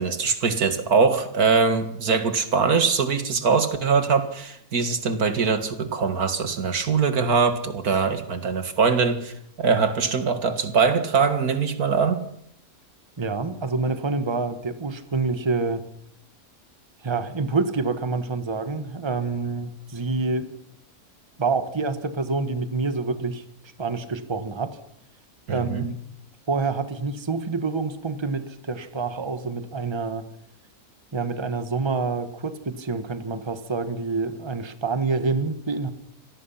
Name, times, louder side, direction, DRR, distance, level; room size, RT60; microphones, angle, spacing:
voice 1, 0.0-12.2 25.5-25.9, right 5 dB, 80° right, 9 dB, 2.4 m, -22 dB
voice 2, 13.2-15.8 17.0-20.5 21.4-23.4 23.8-24.8 25.5-26.0 26.5-30.3 31.1-35.9, right 4 dB, 20° right, 10 dB, 1.3 m, -27 dB
26.0 x 18.0 x 5.8 m, 0.71 s
omnidirectional pair, 1.6 m